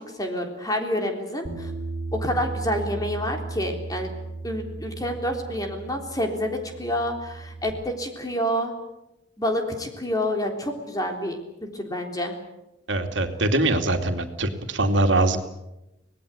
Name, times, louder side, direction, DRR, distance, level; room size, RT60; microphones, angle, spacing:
voice 1, 0.0-1.7 2.1-4.1 4.4-8.7 9.4-11.4 11.7-12.4, equal, 20° left, 3 dB, 3.6 m, -28 dB
Bass guitar, 1.4-7.7, right 3 dB, 35° right, 3.4 m, -35 dB
voice 2, 12.9-15.4, right 2 dB, 80° right, 5 dB, 2.6 m, -22 dB
25.0 x 19.0 x 8.4 m, 0.93 s
head